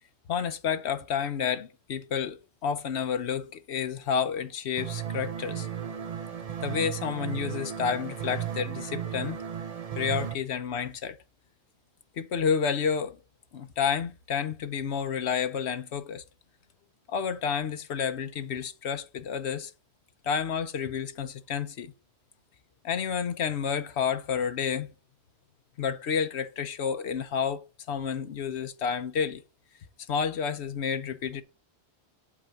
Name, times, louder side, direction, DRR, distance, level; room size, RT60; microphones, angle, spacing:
voice 1, 0.3-5.7 6.6-9.4 10.0-11.2 12.2-13.2 13.5-16.2 17.1-19.7 20.2-21.9 22.8-24.9 25.8-29.4 30.1-31.4, left 7 dB, 85° left, 1.1 m, -30 dB
sound 1, 4.8-10.3, right 9 dB, 40° right, 0.7 m, -35 dB
8.5 x 3.9 x 7.0 m
omnidirectional pair, 1.1 m